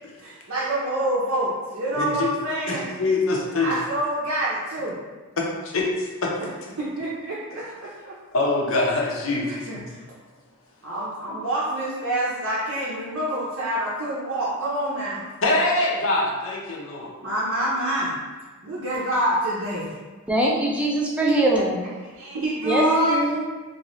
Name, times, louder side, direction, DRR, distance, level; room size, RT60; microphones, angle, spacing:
voice 1, 0.2-2.9 3.6-5.0 6.8-8.1 8.7-8.8 9.4-10.0 10.8-15.2 17.2-18.1 18.6-19.9 22.1-23.2, right 1 dB, 65° right, 0.6 m, -26 dB
voice 2, 1.9-2.3 2.7-3.8 5.4-6.3 8.3-9.8 15.4-17.1, left 2 dB, 65° left, 0.6 m, -24 dB
voice 3, 20.3-21.8 22.6-23.4, right 1 dB, 5° right, 0.4 m, -22 dB
2.9 x 2.6 x 3.0 m
head